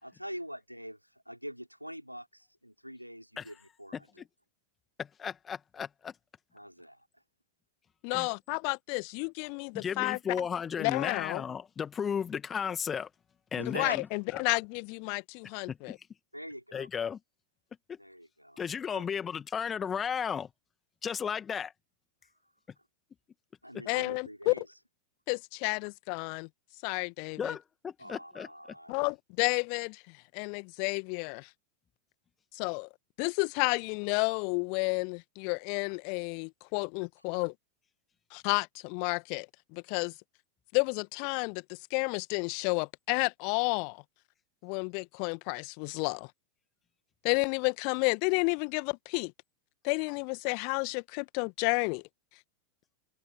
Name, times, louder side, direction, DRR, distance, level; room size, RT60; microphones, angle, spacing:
voice 1, 0.0-4.1 6.5-7.1 13.5-14.0 16.3-16.9 18.0-18.6 18.9-19.0 23.6-24.7 28.0-28.9, equal, 90° right, 4.0 m, -44 dB
voice 2, 5.0-6.1 8.1-8.3 9.7-13.1 13.5-14.1 15.7-16.0 16.7-17.2 17.9-18.0 18.6-20.5 21.0-21.7 27.4-28.5, left 7 dB, 20° left, 2.2 m, -34 dB
voice 3, 8.0-10.2 10.8-11.4 13.7-15.9 23.9-24.5 25.3-26.5 26.8-27.6 28.9-31.5 32.5-32.9 33.2-37.5 38.3-39.5 39.7-40.1 40.7-44.0 44.6-46.3 47.2-49.3 49.8-52.0, left 40 dB or more, 45° left, 1.6 m, -31 dB
open air
figure-of-eight pair, 90°, 0 cm